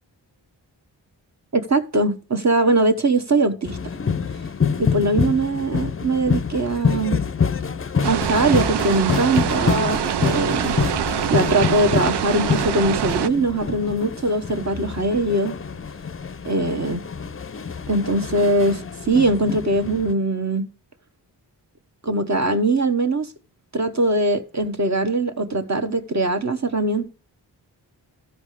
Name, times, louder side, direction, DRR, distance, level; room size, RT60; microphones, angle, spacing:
voice 1, 1.5-3.8 4.8-7.2 8.0-10.8 11.3-15.5 16.4-17.0 17.9-20.7 22.0-23.3 23.7-27.1, right 2 dB, 35° right, 1.1 m, -21 dB
sound 1, 3.6-20.1, left 6 dB, 30° left, 0.6 m, -26 dB
sound 2, 8.0-13.3, right 10 dB, 65° right, 0.5 m, -25 dB
13.0 x 5.1 x 4.9 m
cardioid pair, 40°, 45 cm